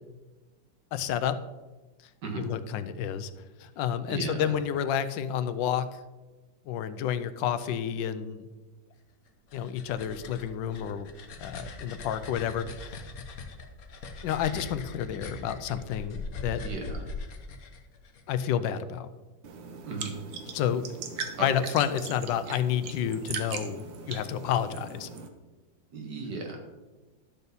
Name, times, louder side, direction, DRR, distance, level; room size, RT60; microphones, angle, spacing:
voice 1, 0.9-1.4 2.4-3.3 3.6-6.0 6.7-8.5 9.5-11.1 11.4-13.1 14.2-16.6 18.3-19.1 20.5-20.9 21.4-25.1, left 9 dB, 80° left, 12 dB, 1.3 m, -30 dB
voice 2, 4.1-4.5 16.6-17.0 19.9-20.1 21.4-21.5 25.9-26.6, right 4 dB, 65° right, 2 dB, 2.1 m, -36 dB
sound 1, 9.3-18.2, left 3 dB, 55° left, 1.3 m, -41 dB
sound 2, 19.4-25.3, right 5 dB, 80° right, 1.6 m, -40 dB
12.0 x 6.8 x 4.0 m, 1.2 s
omnidirectional pair, 2.0 m